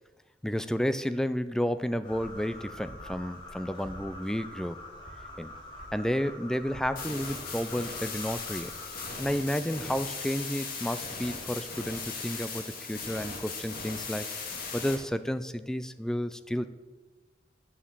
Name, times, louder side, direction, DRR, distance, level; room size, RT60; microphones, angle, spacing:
voice 1, 0.4-4.8 5.4-5.5 5.9-8.7 9.2-16.7, equal, 5° left, 12 dB, 0.4 m, -31 dB
sound 1, 2.0-9.1, left 1 dB, 30° left, 2.6 m, -45 dB
sound 2, 7.0-15.0, left 4 dB, 55° left, 2.0 m, -38 dB
8.8 x 7.0 x 7.4 m, 1.3 s
head